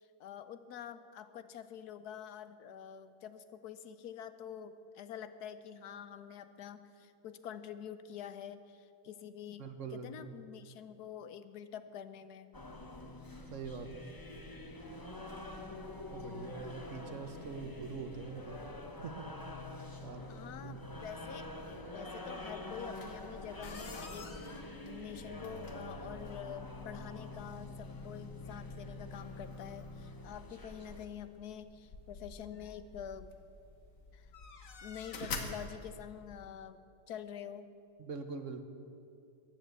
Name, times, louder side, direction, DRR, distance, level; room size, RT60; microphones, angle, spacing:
voice 1, 0.0-12.5 16.1-16.5 20.3-21.5 21.9-33.3 34.1-34.3 34.8-36.8 37.1-37.7, left 9 dB, 85° left, 12 dB, 1.3 m, -47 dB
voice 2, 9.6-10.3 13.5-14.1 16.1-18.6 18.9-19.5 20.0-20.2 20.6-21.0 38.0-38.6, right 5 dB, 55° right, 7 dB, 1.3 m, -44 dB
sound 1, 12.5-31.1, left 2 dB, 15° left, 0.8 m, -46 dB
sound 2, 22.9-36.5, left 4 dB, 60° left, 1.5 m, -49 dB
15.0 x 10.5 x 8.0 m, 2.5 s
omnidirectional pair, 1.6 m